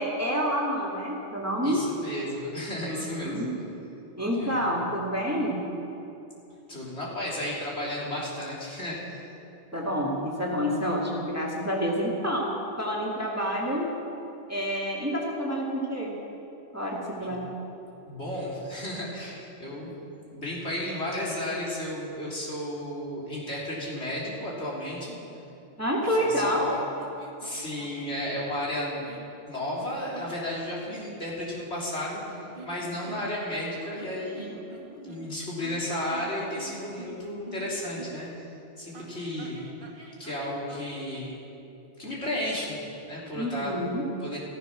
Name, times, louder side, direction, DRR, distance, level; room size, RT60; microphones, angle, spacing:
voice 1, 0.0-1.9 2.9-3.6 4.2-5.6 9.7-13.9 14.5-16.1 16.7-17.5 25.8-26.8 43.3-44.1, equal, 10° right, -3 dB, 2.1 m, -28 dB
voice 2, 1.6-3.4 4.4-4.7 6.7-9.2 17.2-17.3 18.1-19.9 20.3-25.1 26.1-26.7 27.4-29.0 29.5-34.6 35.0-38.5 38.8-39.6 40.2-41.4 42.0-42.8 43.1-43.7 44.2-44.4, left 1 dB, 60° left, -6 dB, 3.7 m, -33 dB
sound 1, 26.4-28.2 28.7-29.3 29.8-31.0 32.2-33.5 33.8-38.3 38.9-41.1, right 3 dB, 45° right, 1.7 m, -46 dB
15.0 x 14.5 x 6.1 m, 2.9 s
omnidirectional pair, 1.2 m